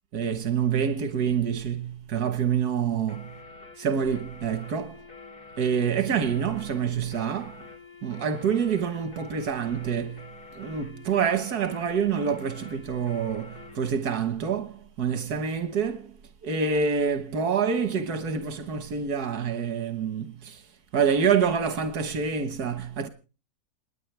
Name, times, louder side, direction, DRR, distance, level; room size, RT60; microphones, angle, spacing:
voice 1, 0.1-3.3 3.8-5.0 5.6-7.6 8.0-10.2 10.5-16.1 16.4-20.6 20.9-23.1, right 7 dB, 85° right, 1.8 m, -27 dB
sound 1, 3.1-13.8, left 4 dB, 90° left, 3.6 m, -47 dB
29.0 x 9.8 x 3.3 m
omnidirectional pair, 1.6 m